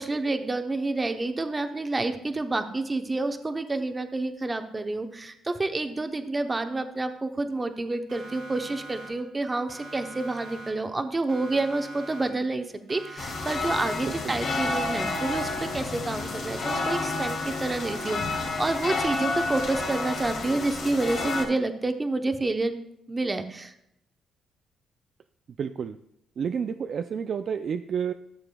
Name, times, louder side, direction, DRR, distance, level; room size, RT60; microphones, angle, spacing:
voice 1, 0.0-22.8 23.1-23.7, right 2 dB, 25° right, 7 dB, 0.8 m, -29 dB
Siren, 8.1-9.4 9.7-11.0 11.3-12.6 12.9-14.2 14.5-15.8 16.1-17.4 17.7-19.0 19.3-20.6, right 1 dB, 80° right, 2.0 m, -44 dB
sound 1, 13.2-21.4, left 3 dB, 65° left, 2.1 m, -30 dB
voice 2, 14.1-14.4 25.6-26.0 26.4-28.1, right 7 dB, 55° right, 9 dB, 0.3 m, -30 dB
13.0 x 7.0 x 2.3 m, 0.77 s
cardioid pair, 90°, 0 cm